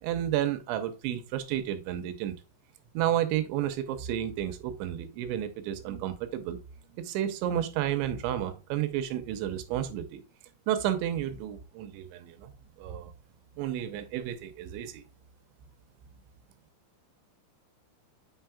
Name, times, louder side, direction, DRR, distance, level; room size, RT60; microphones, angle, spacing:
voice 1, 0.0-2.4 2.9-6.6 6.9-10.2 10.7-12.5 12.8-13.1 13.6-15.0, right 11 dB, 85° right, 9 dB, 3.1 m, -31 dB
8.2 x 5.6 x 2.3 m, 0.32 s
omnidirectional pair, 5.4 m